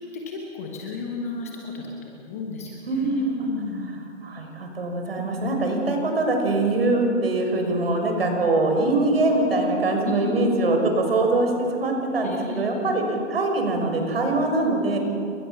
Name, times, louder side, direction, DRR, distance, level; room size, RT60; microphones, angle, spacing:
voice 1, 0.0-4.0 5.1-5.2 10.0-10.9 12.2-12.6, left 3 dB, 10° left, 0 dB, 1.1 m, -34 dB
voice 2, 2.9-3.3 4.2-13.0 13.3-15.0, right 2 dB, 50° right, 3 dB, 6.0 m, -23 dB
30.0 x 23.0 x 7.0 m, 2.5 s
hypercardioid pair, 170°, 38 cm